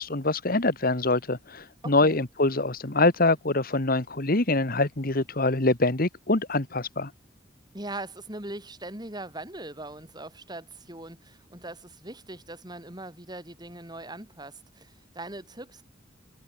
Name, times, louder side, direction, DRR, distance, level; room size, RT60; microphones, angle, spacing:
voice 1, 0.0-7.1, left 2 dB, 50° left, 1.9 m, -24 dB
voice 2, 1.8-2.2 7.7-15.8, right 2 dB, 20° right, 6.9 m, -40 dB
head